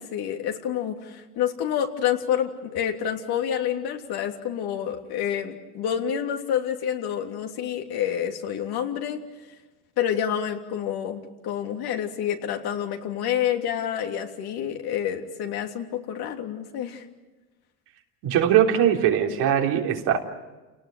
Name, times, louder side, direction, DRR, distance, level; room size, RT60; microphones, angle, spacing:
voice 1, 0.0-9.2 10.0-17.1, left 9 dB, 60° left, 3 dB, 3.2 m, -28 dB
voice 2, 18.2-20.2, right 9 dB, 60° right, 1 dB, 3.5 m, -21 dB
29.5 x 19.0 x 9.2 m, 1.2 s
supercardioid pair, 90°, 44 cm